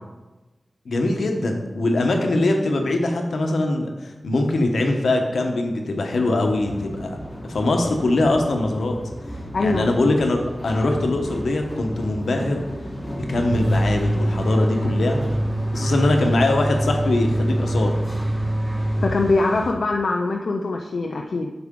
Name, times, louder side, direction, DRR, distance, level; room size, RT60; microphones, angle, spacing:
voice 1, 0.9-7.2 7.4-9.0 9.6-12.6 13.1-15.4 15.7-17.9, left 2 dB, 85° left, 3 dB, 1.1 m, -22 dB
sound 1, 6.4-19.7, equal, 10° left, 1.5 m, -35 dB
voice 2, 9.5-9.8 19.0-21.5, left 3 dB, 65° left, 2 dB, 0.5 m, -22 dB
sound 2, 13.5-19.6, right 1 dB, 30° right, 0.7 m, -24 dB
8.2 x 6.0 x 3.8 m, 1.2 s
wide cardioid pair, 115°, 0 cm